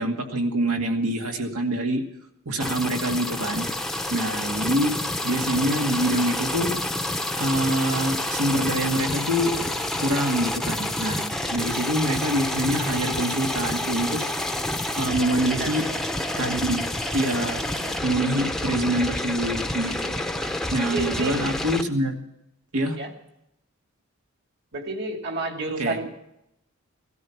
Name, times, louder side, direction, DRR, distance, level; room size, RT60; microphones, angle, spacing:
voice 1, 0.0-2.0 2.5-3.7 4.1-5.0 5.2-6.8 7.4-9.7 10.0-14.2 14.9-15.9 16.4-16.8 17.1-22.2 22.7-23.0 25.8-26.1, right 1 dB, 90° right, 3 dB, 2.2 m, -25 dB
sound 1, 2.6-21.8, left 1 dB, ahead, 0.7 m, -28 dB
voice 2, 15.3-15.9 20.9-21.4 22.9-23.1 24.7-26.1, right 3 dB, 50° right, 4 dB, 2.3 m, -30 dB
17.5 x 13.5 x 5.9 m, 0.82 s
head